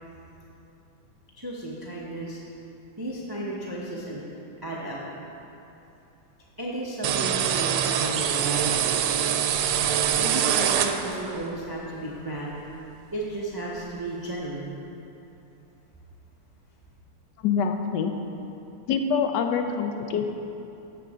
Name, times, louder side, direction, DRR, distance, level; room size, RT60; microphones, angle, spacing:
voice 1, 1.4-2.4 3.0-4.2 4.6-5.0 6.6-9.0 9.9-12.6 13.1-14.8, right 1 dB, 25° right, -4 dB, 0.4 m, -33 dB
sound 1, 7.0-11.4, right 9 dB, 85° right, 1.5 m, -24 dB
voice 2, 17.4-18.1 18.9-20.4, left 6 dB, 70° left, 6 dB, 1.0 m, -25 dB
13.5 x 7.1 x 3.6 m, 2.9 s
omnidirectional pair, 2.4 m